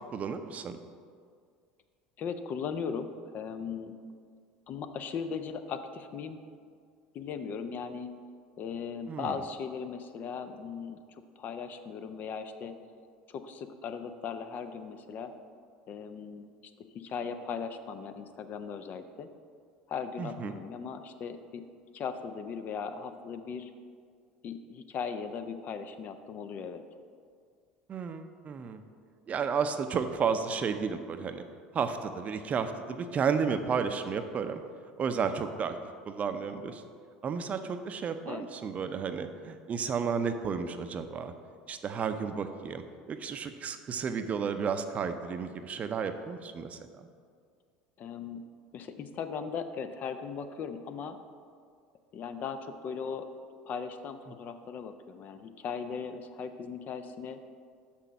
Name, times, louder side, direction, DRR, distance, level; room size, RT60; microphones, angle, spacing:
voice 1, 0.1-0.8 9.1-9.3 20.2-20.5 27.9-28.8 29.3-31.4 31.7-34.6 35.0-35.8 36.0-36.8 37.2-41.3 41.7-46.8, right 6 dB, 35° right, 8 dB, 0.6 m, -32 dB
voice 2, 2.2-3.9 4.7-6.4 7.1-8.1 8.6-12.7 13.3-15.3 15.9-16.4 16.9-19.3 19.9-21.6 21.9-23.7 24.4-26.8 38.3-38.5 48.0-48.4 48.7-51.2 52.1-53.3 53.6-57.4, left 6 dB, 45° left, 9 dB, 0.6 m, -38 dB
6.3 x 6.0 x 5.7 m, 2.1 s
hypercardioid pair, 75°, 4 cm